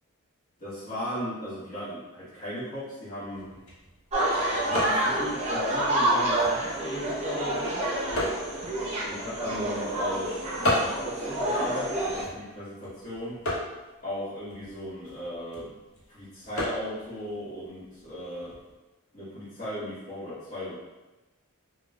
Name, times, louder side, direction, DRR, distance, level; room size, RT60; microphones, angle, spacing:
voice 1, 0.6-3.5 4.7-7.8 9.1-13.4 14.0-15.8 16.1-18.6 19.1-20.8, left 1 dB, 45° left, -13 dB, 1.0 m, -36 dB
sound 1, 3.2-18.7, left 1 dB, 65° left, 1.0 m, -37 dB
sound 2, 4.1-12.2, right 1 dB, 30° right, 0.6 m, -28 dB
3.8 x 2.2 x 2.3 m, 1.1 s
head